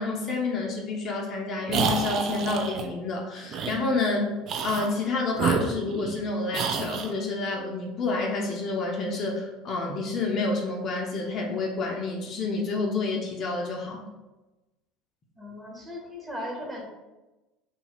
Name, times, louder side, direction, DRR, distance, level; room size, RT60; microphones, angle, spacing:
voice 1, 0.0-4.4 4.6-14.0, left 3 dB, 45° left, 0 dB, 0.6 m, -29 dB
sound 1, 1.7-2.9 3.5-3.8 4.4-4.9 5.3-6.2 6.5-7.1, right 5 dB, 45° right, 0.3 m, -28 dB
voice 2, 15.4-16.9, equal, 15° right, -1 dB, 0.9 m, -37 dB
2.7 x 2.3 x 3.1 m, 1.1 s
figure-of-eight pair, 70°, 0 cm